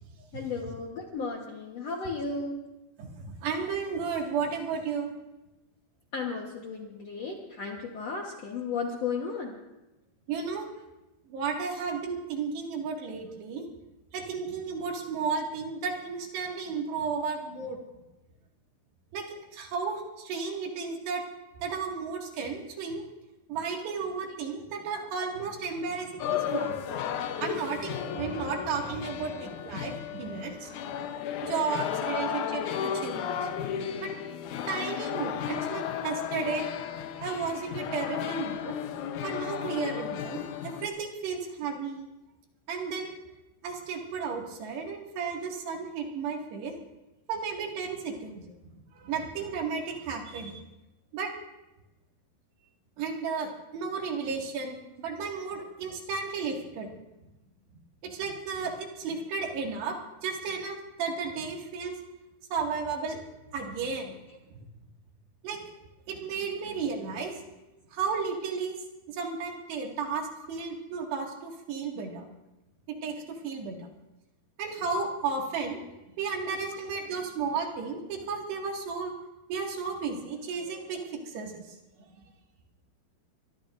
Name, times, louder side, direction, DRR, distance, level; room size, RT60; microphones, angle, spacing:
voice 1, 0.3-2.6 6.1-9.6 32.1-32.2 76.7-76.8, left 4 dB, 65° left, 0 dB, 1.6 m, -34 dB
voice 2, 3.0-5.1 10.3-10.7 11.3-13.7 14.1-17.8 19.1-19.2 19.5-21.2 21.6-23.0 23.5-26.8 27.4-31.0 31.4-33.3 34.0-34.1 34.7-36.7 37.2-38.8 39.2-42.1 42.7-43.1 43.6-46.7 47.3-48.5 48.9-50.6 51.1-51.3 53.0-56.9 58.0-60.0 60.2-61.9 62.5-63.2 63.5-64.1 65.4-65.6 66.1-67.3 67.9-68.8 69.1-72.3 72.9-73.8 74.6-75.8 76.2-79.1 79.5-81.6, right 5 dB, 85° right, 0 dB, 4.2 m, -33 dB
sound 1, 26.2-40.9, left 9 dB, 85° left, 1.7 m, -34 dB
24.0 x 22.0 x 2.6 m, 1.0 s
omnidirectional pair, 4.7 m